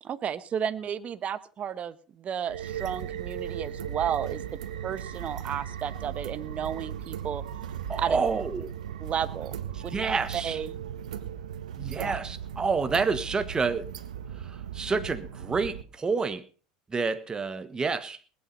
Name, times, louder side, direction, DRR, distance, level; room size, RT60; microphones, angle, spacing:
voice 1, 0.0-4.4 4.8-7.4 8.0-8.2 9.0-9.5 10.3-10.7 12.0-12.1, right 8 dB, 35° right, 14 dB, 1.2 m, -32 dB
sound 1, 2.5-15.8, right 9 dB, 85° right, 1.6 m, -37 dB
voice 2, 7.9-8.7 9.7-10.6 11.8-13.9 14.4-16.4 16.9-18.2, right 4 dB, 20° right, 11 dB, 1.4 m, -29 dB
20.0 x 8.9 x 5.5 m, 0.38 s
hypercardioid pair, 95°, 4 cm